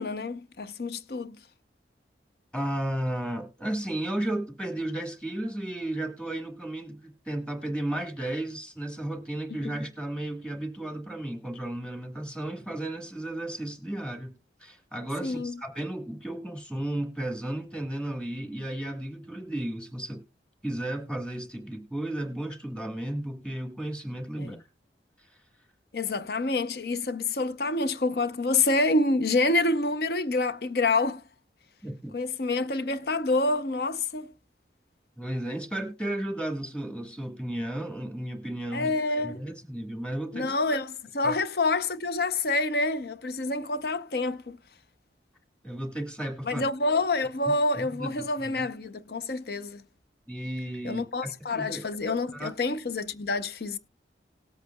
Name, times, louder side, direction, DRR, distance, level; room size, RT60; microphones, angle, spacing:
voice 1, 0.0-1.4 15.2-15.6 24.4-24.6 25.9-31.2 32.1-34.3 38.7-39.4 40.3-44.6 46.4-49.8 50.8-53.8, left 2 dB, 60° left, 0.7 m, -27 dB
voice 2, 2.5-14.3 14.6-20.2 20.6-24.6 25.2-25.4 31.8-32.2 35.2-38.9 39.2-40.5 41.2-41.4 45.6-46.6 47.8-48.1 48.4-48.7 50.3-52.5, right 1 dB, 5° left, 1.6 m, -34 dB
18.5 x 8.2 x 2.2 m
head